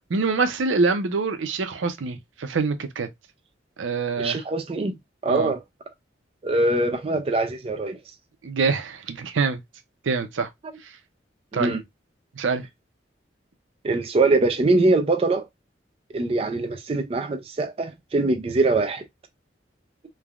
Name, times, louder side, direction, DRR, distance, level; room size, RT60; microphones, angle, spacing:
voice 1, 0.1-3.1 3.8-4.4 5.3-5.5 8.4-9.6 10.1-10.5 11.5-11.7 12.4-12.6, right 4 dB, 90° right, 0.5 m, -25 dB
voice 2, 4.2-4.9 5.2-5.6 6.4-8.0 11.5-11.8 13.8-15.4 16.1-19.0, right 2 dB, 30° right, 0.4 m, -23 dB
3.3 x 2.1 x 2.3 m
head